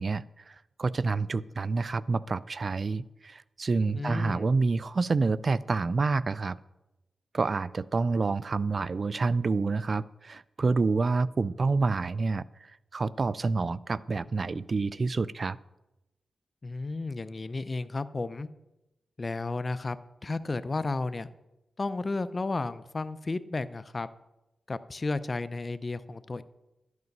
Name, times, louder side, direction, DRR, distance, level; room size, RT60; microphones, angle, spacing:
voice 1, 0.0-6.6 7.3-12.4 12.9-15.6, right 4 dB, 45° right, 18 dB, 0.4 m, -28 dB
voice 2, 3.9-4.5 16.6-18.5 19.2-20.0 20.2-21.3 21.8-24.1 24.7-26.4, left 3 dB, 35° left, 13 dB, 0.6 m, -33 dB
12.0 x 9.5 x 5.4 m, 0.97 s
cardioid pair, 75°, 0 cm